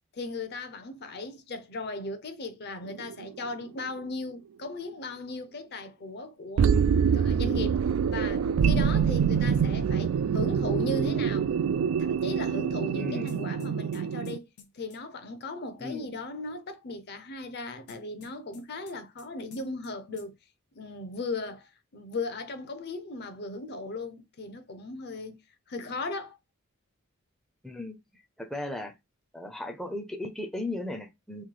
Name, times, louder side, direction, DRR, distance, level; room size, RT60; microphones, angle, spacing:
voice 1, 0.1-6.7 7.1-11.5 12.0-14.5 14.7-20.4 20.7-25.4 25.7-26.4, left 2 dB, 50° left, 0.6 m, -37 dB
sound 1, 2.8-3.5 4.0-4.1 6.6-14.4, right 7 dB, 70° right, 0.3 m, -25 dB
voice 2, 12.9-13.3 15.8-16.1 27.6-28.0 28.4-28.9 29.3-31.4, left 2 dB, ahead, 0.5 m, -36 dB
sound 2, 13.3-15.0 17.9-19.3 19.5-19.9 20.2-20.3, left 6 dB, 80° left, 1.0 m, -53 dB
3.1 x 2.6 x 3.8 m
head